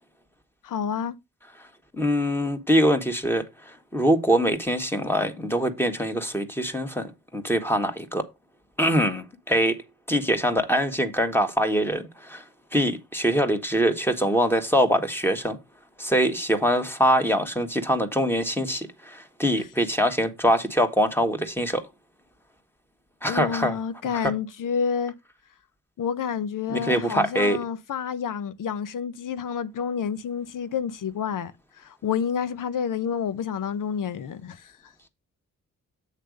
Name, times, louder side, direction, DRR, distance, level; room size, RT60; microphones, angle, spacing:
voice 1, 0.6-1.1 23.3-25.1 26.0-31.5 31.8-34.7, left 7 dB, 65° left, 0.9 m, -29 dB
voice 2, 1.9-8.3 8.8-9.8 10.1-12.4 12.7-15.6 16.0-21.9 23.2-23.8 24.2-24.3 26.7-27.6, equal, 5° left, 1.7 m, -23 dB
8.3 x 3.3 x 6.5 m
supercardioid pair, 50°, 34 cm